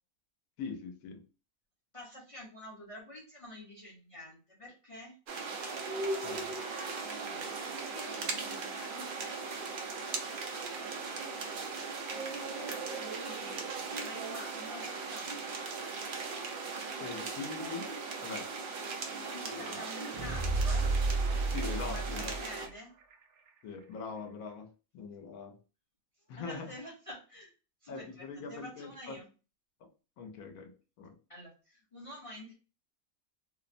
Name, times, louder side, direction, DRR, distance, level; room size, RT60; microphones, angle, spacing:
voice 1, 0.6-1.2 6.2-6.6 17.0-18.5 19.5-19.8 21.4-22.4 23.6-24.7 24.9-25.6 26.3-26.7 27.9-29.2 30.2-30.7 31.0-31.2, left 5 dB, 80° left, 5 dB, 1.0 m, -42 dB
voice 2, 1.9-5.1 7.0-9.4 12.1-15.7 18.8-20.9 21.8-22.9 26.3-27.5 27.8-29.3 31.3-32.5, left 1 dB, 35° left, -3 dB, 0.5 m, -49 dB
sound 1, 5.3-22.7, right 4 dB, 75° right, 0.4 m, -38 dB
sound 2, 19.9-22.8 23.1-23.2, right 3 dB, 90° right, 1.0 m, -31 dB
2.7 x 2.0 x 2.5 m, 0.33 s
omnidirectional pair, 1.5 m